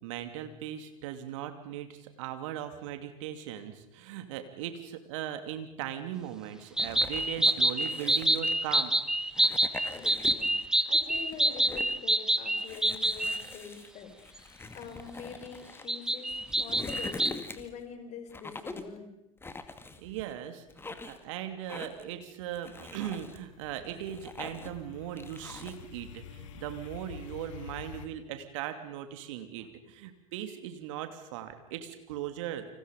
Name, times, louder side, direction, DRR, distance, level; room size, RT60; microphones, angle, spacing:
voice 1, 0.0-9.0 20.0-32.7, right 11 dB, 60° right, 8 dB, 2.9 m, -39 dB
sound 1, 6.8-8.9 9.3-10.7 11.0-12.0 12.6-15.9 16.3-17.8 18.3-19.0 19.4-20.3 20.7-21.2 21.7-22.1 22.5-23.4 23.8-24.8 25.2-25.8, left 3 dB, 10° left, 2.3 m, -44 dB
sound 2, 6.8-13.4 15.9-17.3, right 1 dB, 5° right, 1.1 m, -27 dB
voice 2, 9.9-10.5 10.9-19.1, left 6 dB, 40° left, 6 dB, 5.6 m, -45 dB
sound 3, 22.6-28.1, left 8 dB, 60° left, 2.4 m, -48 dB
30.0 x 26.0 x 5.4 m, 0.84 s
figure-of-eight pair, 80°, 18 cm